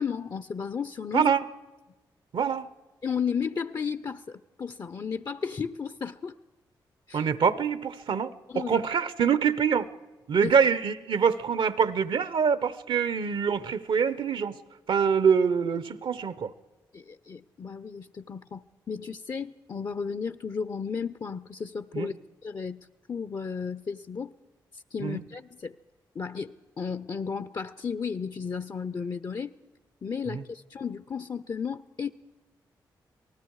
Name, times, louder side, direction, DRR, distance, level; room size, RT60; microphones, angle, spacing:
voice 1, 0.0-1.3 3.0-6.4 7.1-7.3 8.5-8.8 10.4-10.5 16.9-22.1 22.4-24.3 24.9-25.7 26.1-29.5 30.0-32.1, left 6 dB, 50° left, 12 dB, 0.8 m, -34 dB
voice 2, 2.3-2.7 7.1-9.9 10.3-14.6 14.9-16.5 21.9-22.2 25.0-25.2 30.3-30.4, right 6 dB, 70° right, 16 dB, 1.1 m, -25 dB
27.5 x 19.5 x 4.8 m, 1.2 s
supercardioid pair, 45°, 9 cm